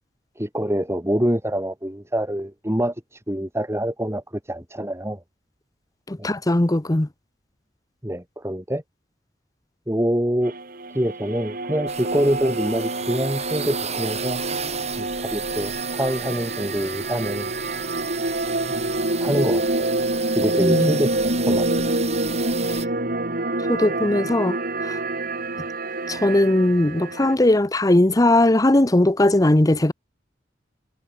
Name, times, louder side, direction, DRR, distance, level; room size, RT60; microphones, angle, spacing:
voice 1, 0.4-5.2 6.2-6.3 8.0-8.8 9.9-10.5 10.9-14.4 15.0-17.5 19.2-19.9 20.4-21.6, equal, 15° right, 5.9 m, -25 dB
voice 2, 6.1-7.1 20.6-21.0 23.7-24.6 24.9-25.0 26.1-29.9, left 1 dB, 20° left, 0.9 m, -19 dB
sound 1, 10.4-27.3, right 2 dB, 55° right, 4.7 m, -27 dB
sound 2, 11.9-22.9, right 7 dB, 40° right, 7.9 m, -34 dB
head